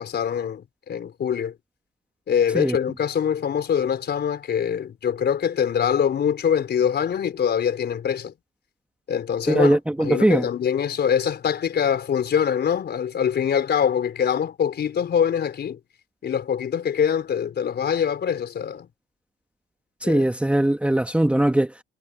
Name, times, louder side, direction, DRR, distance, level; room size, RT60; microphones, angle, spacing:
voice 1, 0.0-1.5 2.3-8.3 9.1-15.8 16.2-18.9 20.0-20.3, left 8 dB, 60° left, 4.6 m, -24 dB
voice 2, 9.5-10.5 20.0-21.7, right 1 dB, 5° right, 1.2 m, -20 dB
cardioid pair, 90°, 20 cm